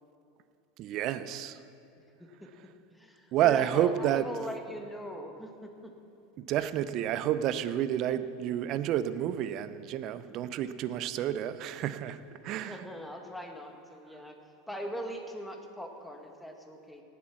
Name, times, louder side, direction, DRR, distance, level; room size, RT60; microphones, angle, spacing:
voice 1, 0.8-1.6 3.3-4.3 6.4-12.9, right 11 dB, 50° right, 13 dB, 0.7 m, -30 dB
voice 2, 2.9-5.9 12.5-14.4 14.7-17.0, equal, 5° left, 3 dB, 1.9 m, -41 dB
18.0 x 8.4 x 6.1 m, 2.8 s
hypercardioid pair, 85°, 0 cm